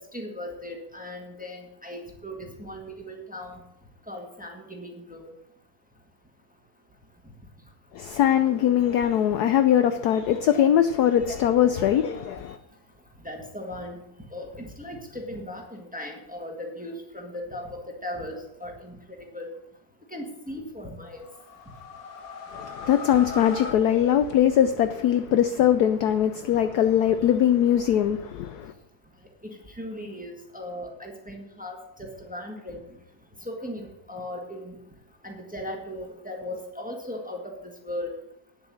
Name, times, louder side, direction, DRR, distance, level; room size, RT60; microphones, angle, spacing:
voice 1, 0.0-3.6 4.1-5.3 13.2-14.0 14.3-19.5 20.1-21.2 26.9-27.0 29.4-32.8 33.4-34.8 35.2-37.4 37.8-38.1, left 1 dB, 5° right, 1.3 m, -37 dB
voice 2, 7.9-12.6 22.5-28.7, left 10 dB, 75° left, 0.9 m, -21 dB
sound 1, 21.1-24.9, left 4 dB, 50° left, 1.5 m, -40 dB
9.4 x 7.7 x 6.2 m
omnidirectional pair, 2.2 m